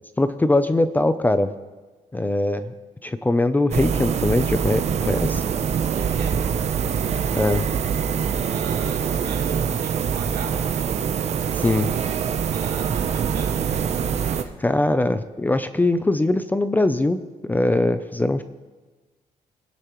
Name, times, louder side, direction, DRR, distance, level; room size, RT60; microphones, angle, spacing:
voice 1, 0.2-1.5 2.1-2.7 3.0-5.4 7.3-7.6 11.5-11.9 14.6-18.4, left 2 dB, 10° left, 11 dB, 0.5 m, -21 dB
sound 1, 3.7-14.4, right 7 dB, 50° right, 0.7 m, -24 dB
voice 2, 5.9-6.4 8.5-10.6 12.5-14.5, right 5 dB, 75° right, -2 dB, 3.2 m, -38 dB
24.0 x 10.0 x 3.1 m, 1.3 s
cardioid pair, 130°, 15 cm